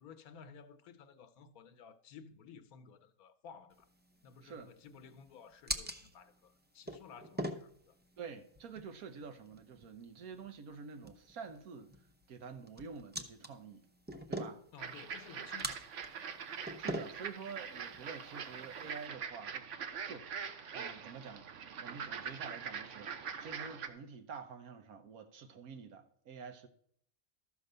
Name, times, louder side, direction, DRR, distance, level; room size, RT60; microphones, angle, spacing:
voice 1, 0.0-3.9 4.2-8.0 14.7-15.8, left 6 dB, 90° left, 1.3 m, -55 dB
sound 1, 3.7-19.1, right 1 dB, 15° right, 0.4 m, -46 dB
voice 2, 4.4-4.7 8.2-12.0 12.3-13.8 14.3-14.6 15.4-15.5 16.8-21.5 21.8-23.1 23.4-26.7, right 5 dB, 85° right, 1.5 m, -48 dB
sound 2, 14.8-23.9, right 6 dB, 60° right, 1.1 m, -43 dB
13.0 x 4.8 x 6.7 m
omnidirectional pair, 1.5 m